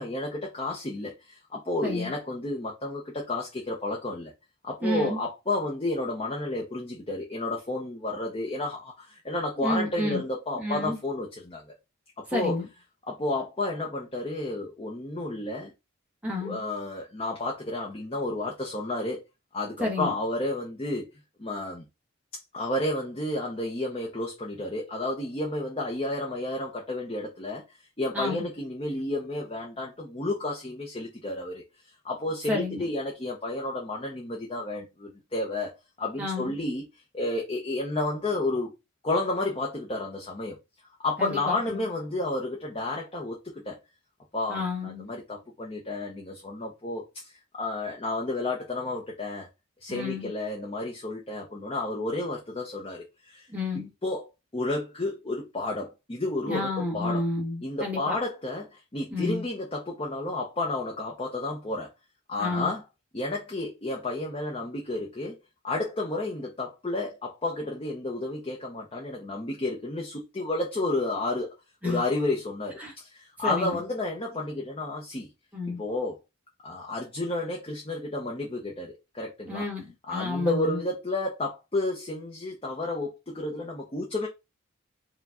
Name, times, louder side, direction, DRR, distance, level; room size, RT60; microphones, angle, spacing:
voice 1, 0.0-4.3 4.6-11.6 12.2-12.6 13.1-15.7 16.4-19.2 19.5-21.1 21.4-21.8 22.5-27.6 28.0-31.6 32.0-36.8 37.1-38.7 39.0-40.6 41.0-43.4 43.6-43.8 44.3-49.5 49.8-53.5 54.0-54.3 54.5-57.2 57.6-61.9 62.3-62.8 63.1-65.4 65.6-71.5 71.8-75.3 75.7-76.2 76.6-79.7 80.1-84.3, left 2 dB, 25° left, 0.7 m, -31 dB
voice 2, 1.8-2.2 4.8-5.2 9.6-10.2 10.6-11.0 12.3-12.7 16.2-16.6 19.8-20.1 28.1-28.5 32.5-32.8 36.2-36.6 41.2-41.9 44.5-45.1 49.9-50.3 53.5-53.9 56.4-58.2 59.1-59.4 62.4-62.8 71.8-72.0 72.8-72.9 73.4-73.8 75.5-75.8 79.5-80.8, left 2 dB, 5° right, 1.2 m, -30 dB
4.6 x 2.3 x 3.6 m
head